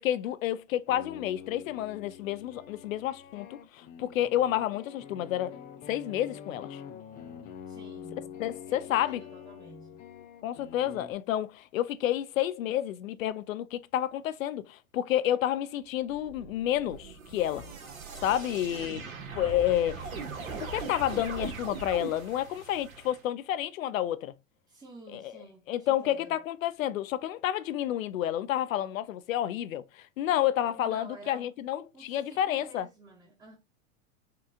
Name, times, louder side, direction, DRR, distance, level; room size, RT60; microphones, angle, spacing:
voice 1, 0.0-5.6 5.9-6.8 8.4-9.2 10.4-17.7 18.2-19.0 19.3-20.0 20.6-24.3 25.1-25.3 25.7-32.9, left 12 dB, 75° left, 0.6 m, -30 dB
sound 1, 0.7-11.1, left 8 dB, 20° left, 0.3 m, -46 dB
voice 2, 7.7-10.0 19.5-19.7 24.7-26.3 30.6-31.6 31.9-33.6, right 2 dB, 10° right, 0.9 m, -51 dB
sound 2, 16.1-23.2, right 4 dB, 80° right, 1.4 m, -40 dB
4.5 x 2.3 x 3.7 m
hypercardioid pair, 100°, 41 cm